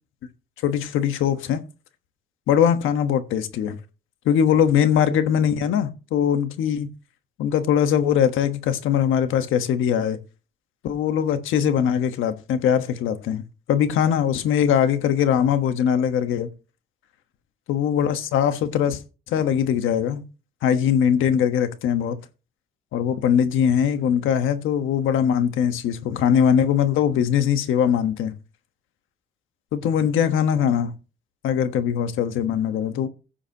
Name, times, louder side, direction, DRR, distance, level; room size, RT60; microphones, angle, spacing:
voice 1, 0.6-1.6 2.5-3.8 4.2-6.9 7.4-10.2 10.8-13.4 13.7-16.5 17.7-19.0 19.3-20.2 20.6-22.2 22.9-28.3 29.7-30.9 31.4-33.1, left 8 dB, 85° left, 1.2 m, -21 dB
16.0 x 7.1 x 2.9 m
cardioid pair, 90°, 20 cm